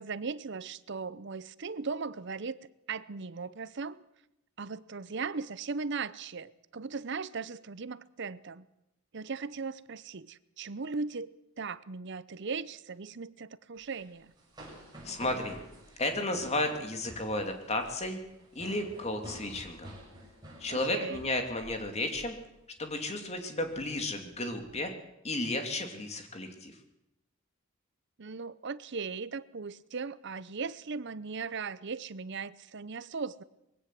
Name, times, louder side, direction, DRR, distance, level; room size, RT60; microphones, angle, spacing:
voice 1, 0.0-2.6 2.9-4.0 4.6-8.7 9.1-14.3 20.7-21.2 28.2-33.4, right 4 dB, 60° right, 0.7 m, -38 dB
sound 1, 13.8-21.9 22.1-22.4 22.8-23.1 23.6-24.7, right 1 dB, 20° right, 6.8 m, -50 dB
voice 2, 15.0-15.6 16.0-18.2 18.5-19.9 20.6-22.4 22.8-24.9 25.2-26.8, left 2 dB, 30° left, 2.6 m, -33 dB
21.5 x 16.5 x 7.6 m
head